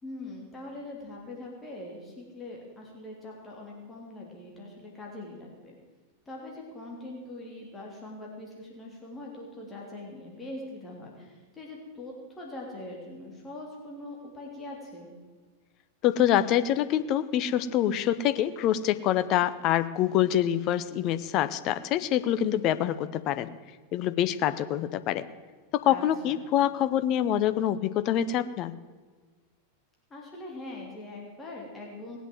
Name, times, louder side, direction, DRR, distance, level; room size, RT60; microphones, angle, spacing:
voice 1, 0.0-5.7 6.3-15.1 25.9-26.4 30.1-32.2, left 2 dB, 15° left, -2 dB, 3.4 m, -42 dB
voice 2, 16.0-23.5 23.9-25.3 25.7-28.7, left 11 dB, 40° left, 13 dB, 0.8 m, -26 dB
19.0 x 8.2 x 7.8 m, 1.4 s
figure-of-eight pair, 90°, 0 cm